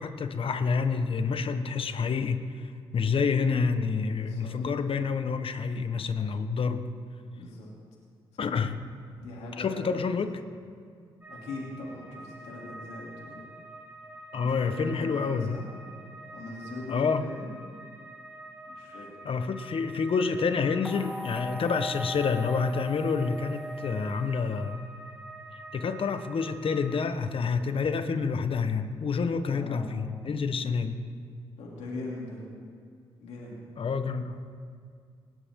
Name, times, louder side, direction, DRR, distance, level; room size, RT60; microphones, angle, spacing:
voice 1, 0.0-2.7 2.9-6.9 8.4-8.8 9.6-10.4 14.3-15.6 16.9-17.3 18.9-19.0 19.2-24.8 25.5-31.0 33.8-34.5, left 5 dB, 60° left, 9 dB, 1.3 m, -28 dB
voice 2, 4.2-4.5 7.3-7.7 8.4-8.5 9.2-9.9 11.3-13.4 14.3-15.7 16.3-17.5 18.7-19.1 29.5-30.3 31.6-32.4 33.2-33.7, left 2 dB, 85° left, -4 dB, 3.1 m, -41 dB
sound 1, 11.2-27.1, right 2 dB, 20° right, 5.5 m, -47 dB
sound 2, 20.8-25.1, left 1 dB, ahead, 0.6 m, -39 dB
19.0 x 18.5 x 3.8 m, 2.2 s
supercardioid pair, 55°, 11 cm